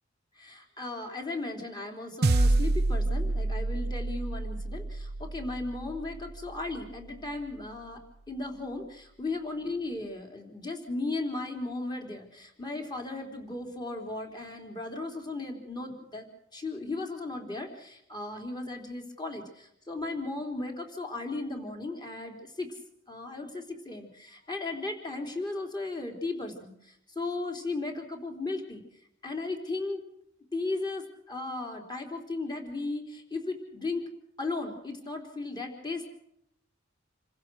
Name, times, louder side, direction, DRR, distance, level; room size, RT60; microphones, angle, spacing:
voice 1, 0.4-8.0 8.3-16.3 16.5-22.7 23.1-28.8 29.2-30.0 30.5-34.0 34.4-36.1, left 2 dB, 20° left, 4 dB, 3.8 m, -36 dB
sound 1, 2.2-6.8, right 2 dB, 55° right, 0.7 m, -28 dB
28.0 x 16.0 x 6.4 m, 0.72 s
head